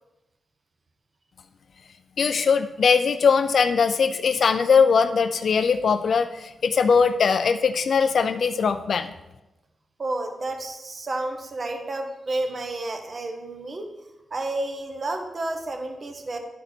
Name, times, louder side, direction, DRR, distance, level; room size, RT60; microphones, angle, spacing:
voice 1, 2.2-9.1, left 5 dB, 65° left, 8 dB, 0.4 m, -20 dB
voice 2, 10.0-13.9 14.3-16.4, right 2 dB, 40° right, 4 dB, 0.9 m, -31 dB
11.0 x 4.1 x 4.3 m, 1.0 s
cardioid pair, 95°, 0 cm